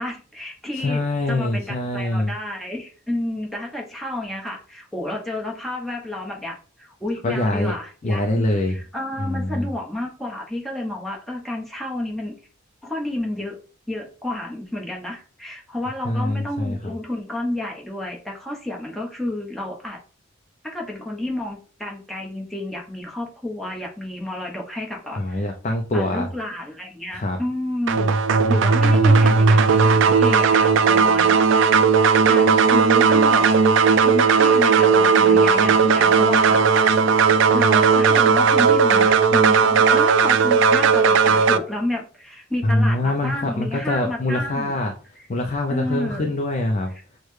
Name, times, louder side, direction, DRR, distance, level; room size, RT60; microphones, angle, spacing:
voice 1, 0.0-1.0 1.3-12.4 12.8-13.6 13.9-20.0 20.6-25.4 25.9-33.5 34.0-37.0 37.5-44.7 45.7-46.2, left 1 dB, ahead, -2 dB, 0.8 m, -30 dB
voice 2, 0.8-2.3 7.2-7.8 8.0-8.8 9.2-9.7 16.0-16.9 25.1-26.3 27.1-27.4 42.6-44.9 45.3-46.9, left 1 dB, 35° left, 3 dB, 0.4 m, -24 dB
sound 1, 27.9-41.6, right 5 dB, 60° right, 0.3 m, -16 dB
6.3 x 2.1 x 3.2 m, 0.39 s
head